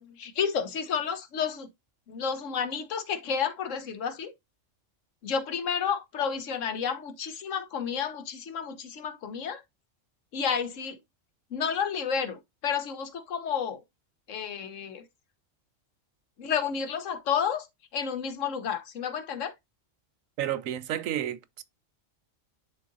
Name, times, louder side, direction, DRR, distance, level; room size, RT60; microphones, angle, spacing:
voice 1, 0.0-1.7 2.1-4.3 5.2-9.6 10.3-11.0 11.5-13.8 14.3-15.0 16.4-17.7 17.9-19.5, left 7 dB, 75° left, 1.2 m, -31 dB
voice 2, 20.4-21.6, right 11 dB, 90° right, 1.0 m, -31 dB
10.5 x 3.8 x 2.5 m
omnidirectional pair, 1.3 m